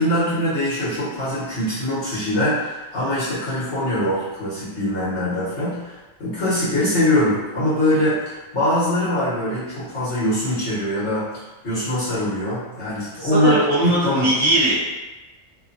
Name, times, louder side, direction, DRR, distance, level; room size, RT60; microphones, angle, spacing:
voice 1, 0.0-11.3 11.6-13.6 13.8-14.3, left 1 dB, 75° left, -11 dB, 1.7 m, -22 dB
voice 2, 13.2-15.0, right 1 dB, 35° right, -9 dB, 0.9 m, -20 dB
3.2 x 2.4 x 2.6 m, 1.2 s
omnidirectional pair, 1.2 m